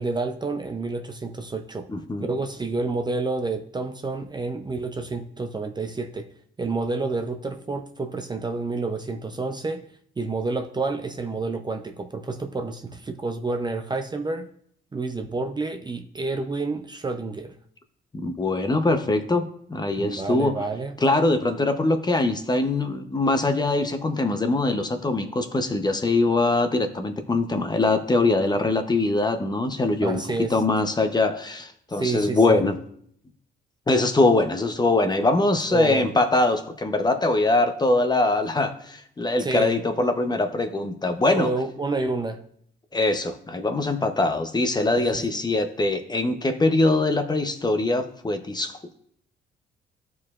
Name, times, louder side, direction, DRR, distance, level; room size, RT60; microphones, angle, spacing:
voice 1, 0.0-1.9 2.2-6.3 6.6-9.8 10.2-14.5 14.9-17.5 20.0-21.0 30.0-30.6 31.9-32.6 35.7-36.1 39.4-39.8 41.4-42.4 45.0-45.2, right 3 dB, 20° right, 6 dB, 0.5 m, -29 dB
voice 2, 1.9-2.3 18.1-20.5 21.0-30.2 30.5-32.8 33.9-41.5 42.9-48.9, left 2 dB, 20° left, 7 dB, 0.8 m, -22 dB
13.5 x 4.7 x 2.4 m, 0.65 s
cardioid pair, 90°, 20 cm